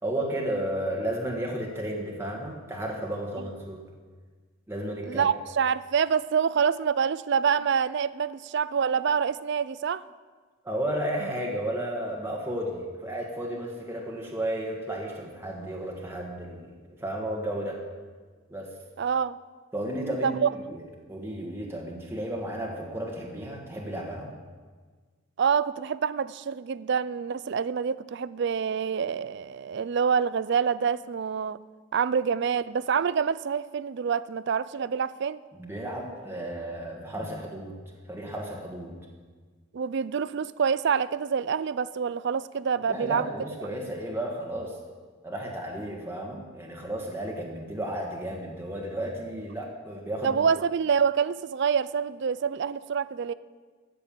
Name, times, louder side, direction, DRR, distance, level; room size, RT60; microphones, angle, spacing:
voice 1, 0.0-3.8 4.7-5.3 10.6-16.7 17.0-17.8 18.5-18.7 19.7-20.8 21.1-24.3 35.6-37.8 38.1-39.0 42.9-44.8 45.2-50.4, right 1 dB, 10° right, -2 dB, 1.6 m, -33 dB
voice 2, 5.1-10.0 19.0-19.4 20.2-20.5 25.4-31.6 31.9-35.4 39.7-43.3 50.2-53.3, right 6 dB, 60° right, 17 dB, 0.4 m, -26 dB
14.0 x 6.9 x 8.8 m, 1.5 s
head